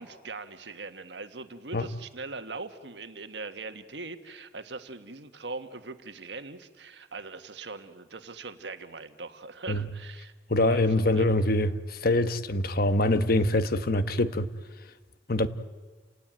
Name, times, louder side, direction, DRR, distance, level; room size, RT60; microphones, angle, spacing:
voice 1, 0.0-10.3 10.7-11.3, right 3 dB, 75° right, 1.5 m, -41 dB
voice 2, 10.5-14.5 15.3-15.5, left 1 dB, 60° left, 1.1 m, -24 dB
29.5 x 18.5 x 8.9 m
head